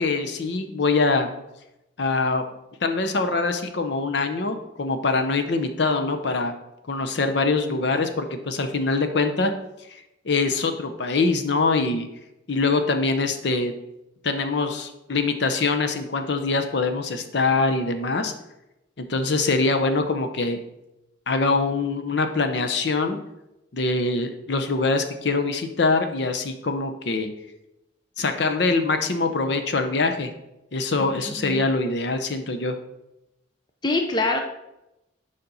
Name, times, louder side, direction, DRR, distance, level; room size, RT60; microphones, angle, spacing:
voice 1, 0.0-1.3 2.0-2.4 2.8-6.5 6.9-9.5 9.9-10.0 10.2-12.1 12.5-13.7 14.2-18.3 19.0-20.6 21.3-23.2 23.7-27.3 28.2-30.3 30.7-32.8, left 3 dB, 60° left, 7 dB, 0.7 m, -23 dB
voice 2, 31.0-31.6 33.8-34.4, left 2 dB, 20° left, 4 dB, 0.5 m, -25 dB
7.0 x 5.1 x 3.9 m, 0.90 s
head